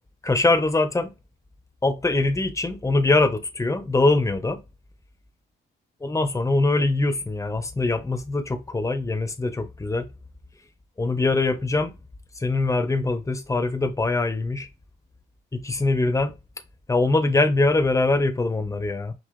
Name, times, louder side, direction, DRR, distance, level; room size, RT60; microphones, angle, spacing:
voice 1, 0.2-1.1 1.8-4.6 6.0-10.1 11.0-11.9 12.4-14.7 15.5-16.3 16.9-19.1, left 2 dB, 15° left, 1.0 m, -23 dB
5.8 x 2.9 x 3.2 m
cardioid pair, 90°, 20 cm